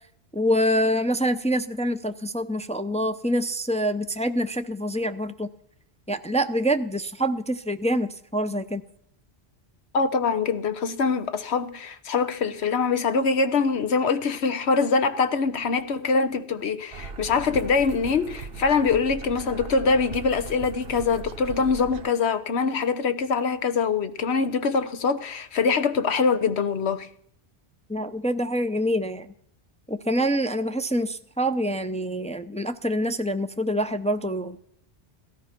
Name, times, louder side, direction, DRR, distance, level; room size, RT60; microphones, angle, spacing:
voice 1, 0.3-5.5 6.1-8.8 27.9-29.3 29.9-34.6, equal, 10° left, 0.5 m, -26 dB
voice 2, 9.9-27.1, left 5 dB, 85° left, 1.3 m, -24 dB
sound 1, 16.9-22.1, right 5 dB, 65° right, 1.2 m, -38 dB
17.5 x 13.0 x 6.0 m
omnidirectional pair, 1.1 m